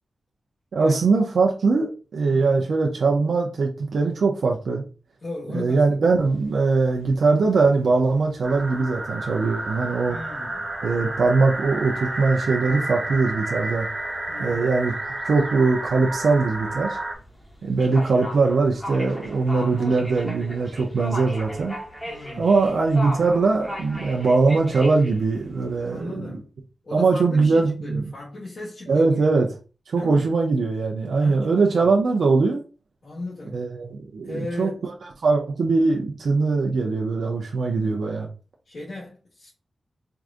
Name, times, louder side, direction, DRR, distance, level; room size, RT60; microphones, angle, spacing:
voice 1, 0.7-4.8 5.5-10.2 10.8-13.9 14.4-14.9 15.2-17.0 17.6-21.7 22.4-26.3 26.9-28.0 28.9-29.5 29.9-32.6 33.5-34.9 35.2-38.3, right 4 dB, 85° right, 0.6 m, -21 dB
voice 2, 2.3-2.7 5.2-6.2 10.1-10.7 14.3-14.7 22.0-22.5 25.8-26.5 26.8-29.2 29.9-30.3 31.1-31.9 33.0-33.6 34.2-34.8 37.6-38.0 38.6-39.5, left 2 dB, 55° left, 1.5 m, -37 dB
sound 1, 6.2-26.0, equal, 15° left, 1.0 m, -40 dB
sound 2, 8.4-17.2, right 2 dB, 30° right, 0.8 m, -31 dB
4.6 x 2.5 x 2.5 m
wide cardioid pair, 160°, 0 cm